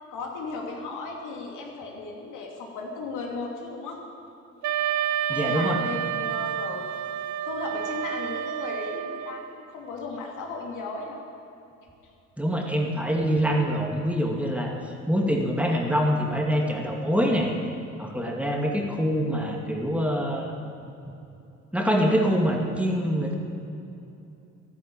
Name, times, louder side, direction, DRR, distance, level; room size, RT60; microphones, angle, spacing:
voice 1, 0.1-4.0 5.2-6.9 7.4-11.2, left 3 dB, 85° left, 0 dB, 2.8 m, -36 dB
Wind instrument woodwind instrument, 4.6-9.5, right 10 dB, 70° right, 0.6 m, -29 dB
voice 2, 5.3-5.8 12.4-17.5 18.0-20.5 21.0-21.1 21.7-23.3, equal, 5° right, 0 dB, 2.4 m, -25 dB
13.5 x 11.5 x 8.8 m, 2.7 s
cardioid pair, 90°, 30 cm